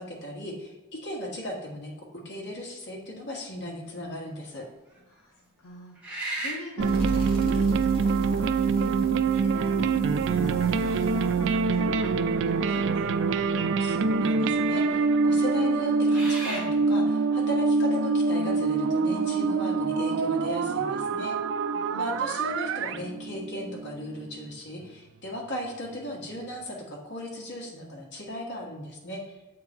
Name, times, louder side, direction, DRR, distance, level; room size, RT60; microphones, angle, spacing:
voice 1, 0.0-4.7 13.8-21.4 21.9-29.4, equal, 55° left, -1 dB, 1.5 m, -37 dB
sound 1, 3.9-4.3 4.9-5.0 5.9-6.8 8.0-8.1 9.0-9.5 9.9-10.0 10.6-11.3 13.0-13.1 13.4-14.0 14.6-14.8 15.7-16.7, right 2 dB, 5° right, 1.7 m, -36 dB
voice 2, 5.1-13.4 21.8-22.3, left 2 dB, 80° left, 0 dB, 0.8 m, -42 dB
sound 2, 6.8-14.1, right 1 dB, 25° left, 1.8 m, -36 dB
sound 3, 6.8-24.5, right 4 dB, 60° right, 0.3 m, -25 dB
7.7 x 3.7 x 4.4 m, 1.1 s
head